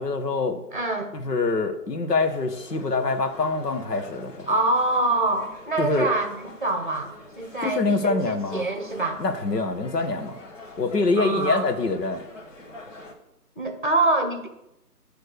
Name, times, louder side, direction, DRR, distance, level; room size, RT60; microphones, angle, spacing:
voice 1, 0.0-0.6 1.1-4.5 5.8-6.1 7.6-8.6 9.2-10.4 10.8-12.2, left 3 dB, 85° left, 5 dB, 1.3 m, -25 dB
voice 2, 0.7-1.1 4.5-9.2 11.2-11.7 13.6-14.5, right 2 dB, 30° right, 6 dB, 0.8 m, -25 dB
sound 1, 2.2-13.1, left 1 dB, 50° left, 1.6 m, -44 dB
8.4 x 3.3 x 6.5 m, 0.85 s
hypercardioid pair, 175°, 47 cm